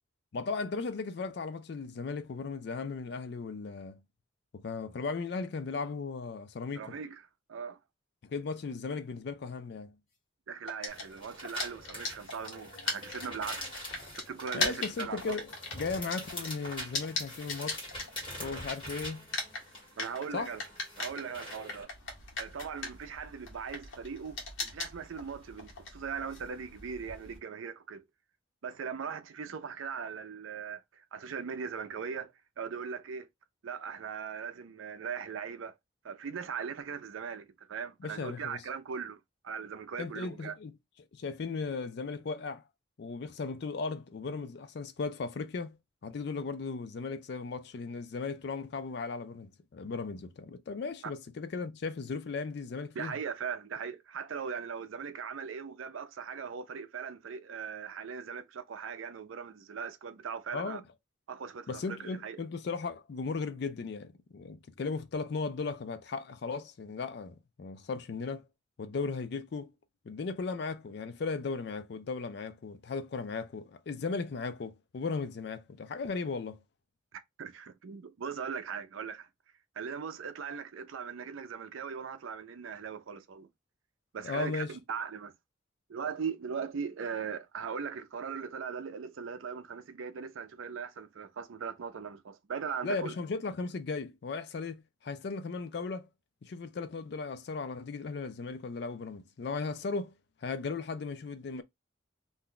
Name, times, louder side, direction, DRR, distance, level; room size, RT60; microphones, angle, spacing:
voice 1, 0.3-4.0 4.5-6.9 8.2-10.0 14.5-17.9 18.4-19.3 20.3-20.5 38.0-38.6 40.0-40.7 41.1-42.6 43.0-45.8 46.0-53.1 60.5-60.8 61.7-68.4 68.8-69.7 70.1-76.6 84.2-84.8 92.8-96.1 96.4-100.1 100.4-101.6, left 4 dB, 55° left, 0.4 m, -36 dB
voice 2, 6.8-7.2 7.5-7.8 10.5-13.7 14.1-15.4 20.0-20.6 21.0-21.9 22.4-28.0 28.6-33.3 33.6-35.7 36.0-40.5 52.9-60.8 61.3-62.4 77.1-79.3 79.8-83.5 84.1-85.3 85.9-93.1, right 6 dB, 80° right, 0.5 m, -39 dB
sound 1, 10.7-18.8 19.1-27.4, left 3 dB, 70° left, 1.1 m, -38 dB
sound 2, 10.9-21.8, equal, 25° left, 1.4 m, -44 dB
2.5 x 2.2 x 3.6 m
head